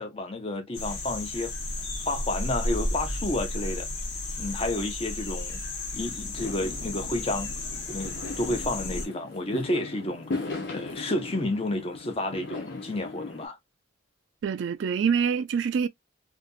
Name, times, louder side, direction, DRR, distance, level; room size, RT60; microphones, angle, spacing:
voice 1, 0.0-1.5 2.1-3.9 4.4-5.6 5.9-7.5 7.9-10.4 10.7-13.6, left 1 dB, 30° left, 0.6 m, -31 dB
sound 1, 0.7-9.1, left 2 dB, 85° left, 1.1 m, -33 dB
Fireworks, 6.4-13.5, left 3 dB, 60° left, 0.9 m, -38 dB
voice 2, 14.4-15.9, right 6 dB, 65° right, 0.3 m, -25 dB
2.5 x 2.5 x 2.3 m
head